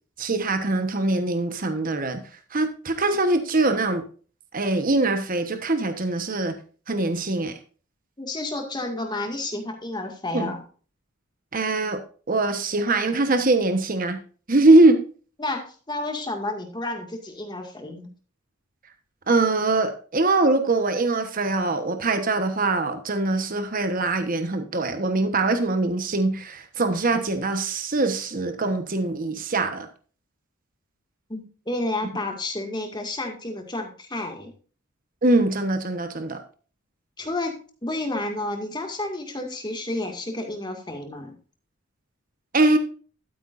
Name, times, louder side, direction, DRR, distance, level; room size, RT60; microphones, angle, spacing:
voice 1, 0.2-2.2 2.5-4.0 4.5-6.5 6.9-7.5 10.3-10.5 11.5-12.0 12.3-14.2 14.5-15.0 19.3-29.9 35.2-36.4 42.5-42.8, right 2 dB, 45° right, 7 dB, 1.2 m, -22 dB
voice 2, 8.2-10.6 15.4-18.1 31.3-34.5 37.2-41.3, left 2 dB, 20° left, 3 dB, 2.1 m, -31 dB
12.5 x 9.1 x 2.6 m, 0.39 s
head